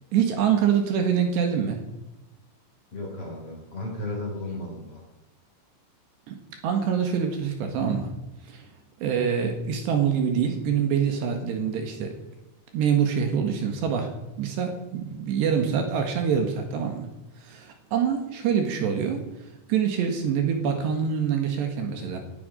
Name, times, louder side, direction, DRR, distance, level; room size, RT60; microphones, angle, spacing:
voice 1, 0.1-1.8 6.3-6.4 6.6-8.1 8.5-8.6 9.0-12.2 12.7-14.1 14.4-17.1 17.4-19.2 19.7-22.2, right 7 dB, 70° right, 5 dB, 3.6 m, -25 dB
voice 2, 2.9-5.0, left 1 dB, 30° left, -1 dB, 3.9 m, -34 dB
18.5 x 11.5 x 5.2 m, 1.0 s
omnidirectional pair, 5.5 m